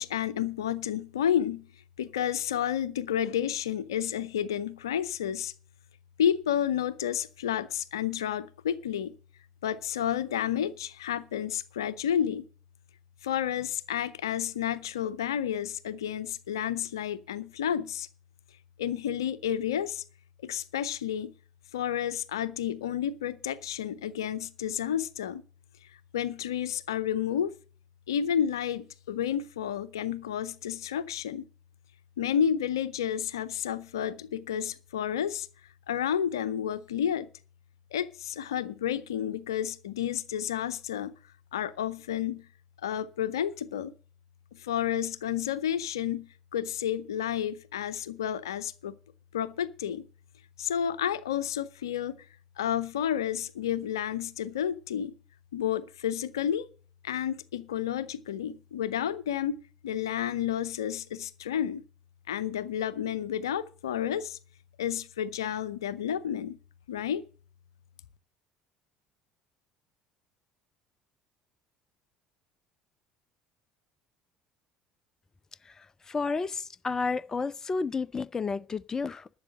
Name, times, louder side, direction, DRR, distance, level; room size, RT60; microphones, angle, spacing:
voice 1, 0.0-1.7 2.0-5.5 6.2-9.1 9.6-12.4 13.2-18.1 18.8-20.0 20.4-21.3 21.7-25.4 26.1-27.5 28.1-31.4 32.2-35.5 35.9-37.3 37.9-41.1 41.5-42.5 42.8-43.9 44.5-49.0 49.3-50.0 50.6-52.3 52.6-55.1 55.5-56.7 57.0-59.6 59.8-61.8 62.3-64.4 64.8-66.6 66.9-67.2, left 9 dB, 75° left, 0.6 m, -31 dB
voice 2, 75.6-79.4, left 4 dB, 25° left, 0.5 m, -32 dB
12.0 x 7.2 x 7.6 m
figure-of-eight pair, 60°, 2 cm